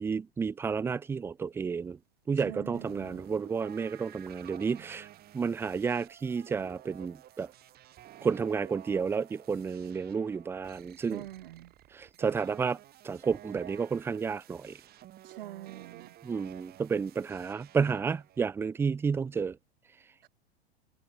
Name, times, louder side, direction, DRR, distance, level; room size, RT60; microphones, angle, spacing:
voice 1, 0.0-2.0 2.3-5.1 5.3-7.5 8.2-11.2 11.9-12.8 13.0-14.7 16.2-19.6, right 5 dB, 5° right, 0.5 m, -31 dB
voice 2, 2.4-3.2 11.1-11.7 15.2-16.1 20.2-20.3, right 14 dB, 55° right, 3.1 m, -45 dB
sound 1, 2.7-18.4, right 13 dB, 30° right, 6.0 m, -52 dB
figure-of-eight pair, 100°, 33 cm